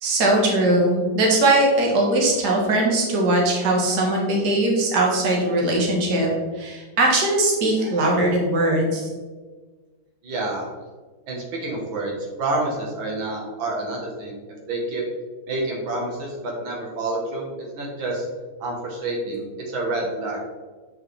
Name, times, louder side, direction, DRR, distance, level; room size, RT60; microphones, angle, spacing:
voice 1, 0.0-6.3 6.5-9.1, right 1 dB, 60° right, -2 dB, 1.9 m, -20 dB
voice 2, 10.2-10.7 11.3-12.1 12.4-14.4 14.7-15.0 15.5-17.5 17.7-18.3 18.6-20.4, right 2 dB, 85° right, -2 dB, 2.1 m, -28 dB
7.8 x 4.8 x 3.3 m, 1.4 s
omnidirectional pair, 2.1 m